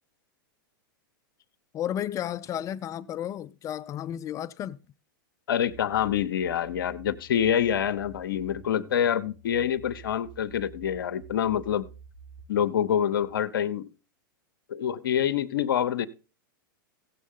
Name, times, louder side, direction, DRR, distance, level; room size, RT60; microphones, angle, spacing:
voice 1, 1.7-4.8, left 11 dB, 30° left, 0.4 m, -33 dB
voice 2, 5.5-11.9 12.5-13.9 14.7-16.1, left 9 dB, 75° left, 1.0 m, -26 dB
sound 1, 5.7-13.3, right 5 dB, 65° right, 1.9 m, -49 dB
16.5 x 7.3 x 3.8 m
hypercardioid pair, 115°, 12 cm